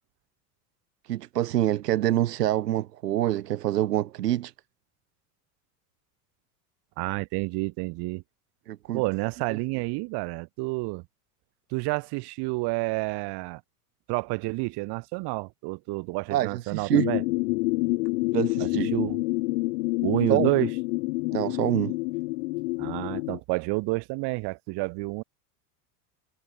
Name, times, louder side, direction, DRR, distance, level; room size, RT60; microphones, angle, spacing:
voice 1, 1.1-4.5 8.7-9.0 16.3-17.1 18.3-18.9 20.3-20.5 21.3-21.9, right 13 dB, 85° right, 1.2 m, -26 dB
voice 2, 7.0-8.2 8.9-11.0 11.7-13.6 14.1-17.2 18.6-19.2 20.0-20.7 22.8-25.2, right 26 dB, 55° right, 2.0 m, -29 dB
sound 1, 16.9-23.4, left 25 dB, 65° left, 1.1 m, -28 dB
hypercardioid pair, 90°, 46 cm